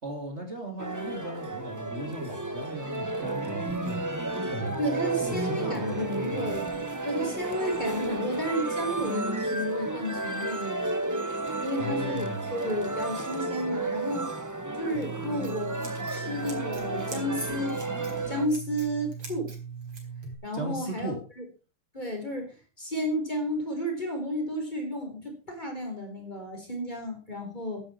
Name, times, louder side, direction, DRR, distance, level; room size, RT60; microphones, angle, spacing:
voice 1, 0.0-4.0 4.5-4.8 5.2-6.6 11.7-12.5 20.5-21.2, right 1 dB, 30° right, 2 dB, 3.0 m, -37 dB
sound 1, 0.8-18.5, right 2 dB, 10° right, 1.1 m, -32 dB
voice 2, 4.8-10.9 11.6-14.3 14.8-15.7 16.1-17.8 18.3-19.5 20.4-21.4 21.9-27.8, equal, 20° left, 3 dB, 4.3 m, -32 dB
Scissors, 14.9-20.3, right 6 dB, 65° right, 4.8 m, -40 dB
15.5 x 11.0 x 4.4 m, 0.34 s
omnidirectional pair, 2.4 m